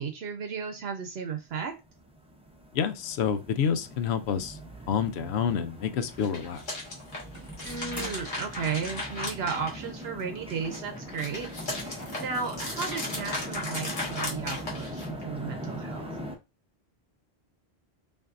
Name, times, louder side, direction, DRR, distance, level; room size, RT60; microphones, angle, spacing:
voice 1, 0.0-1.7 7.6-11.9 12.2-16.1, right 6 dB, 75° right, 0.9 m, -34 dB
sound 1, 1.8-16.4, equal, 10° right, 0.5 m, -41 dB
voice 2, 2.7-4.6 4.9-6.6, left 7 dB, 80° left, 0.8 m, -28 dB
sound 2, 6.1-10.2 10.6-15.2, left 2 dB, 50° left, 1.5 m, -36 dB
sound 3, 7.3-8.4 9.3-9.4 9.6-9.7 10.8-11.2 11.5-11.6 12.0-12.1, equal, 15° left, 1.3 m, -44 dB
5.2 x 2.6 x 2.5 m
omnidirectional pair, 1.1 m